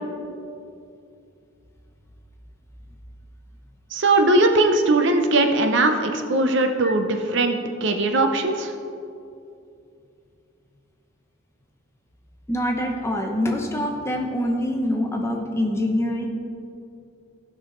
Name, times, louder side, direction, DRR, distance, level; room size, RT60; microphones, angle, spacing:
voice 1, 3.9-8.7, right 2 dB, 55° right, 5 dB, 0.7 m, -20 dB
voice 2, 12.5-16.3, left 1 dB, 10° left, 1 dB, 0.7 m, -25 dB
15.5 x 5.6 x 3.9 m, 2.6 s
head